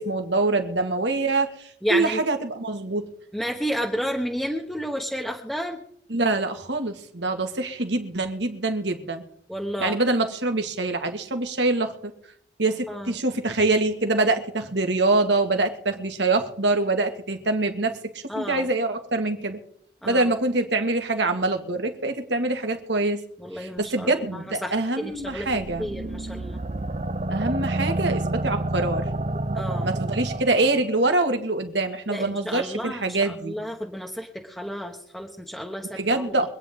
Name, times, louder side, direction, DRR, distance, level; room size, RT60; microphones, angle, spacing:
voice 1, 0.0-3.0 6.1-9.2 9.8-11.9 12.6-19.6 20.0-23.2 23.6-25.9 27.3-29.1 29.8-33.6 35.9-36.5, right 2 dB, 75° right, 5 dB, 2.0 m, -25 dB
voice 2, 1.8-2.2 3.3-5.8 9.5-10.0 12.9-13.2 18.3-18.7 20.0-20.2 23.4-25.5 25.8-26.6 29.5-29.9 32.1-36.5, equal, ahead, 0 dB, 1.2 m, -31 dB
sound 1, 25.2-30.8, right 2 dB, 35° right, 0.8 m, -29 dB
25.0 x 9.6 x 3.7 m, 0.69 s
head